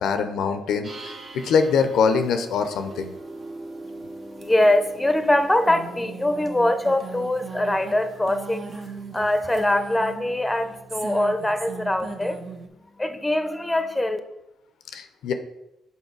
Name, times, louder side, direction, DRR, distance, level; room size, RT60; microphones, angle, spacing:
voice 1, 0.0-3.1 14.9-15.3, left 6 dB, 75° left, 8 dB, 0.5 m, -23 dB
sound 1, 0.8-12.7, right 3 dB, 50° right, 0.9 m, -39 dB
voice 2, 3.8-12.4 13.0-14.2, left 1 dB, 10° left, 9 dB, 0.7 m, -23 dB
5.6 x 4.2 x 4.6 m, 0.91 s
supercardioid pair, 70°, 0 cm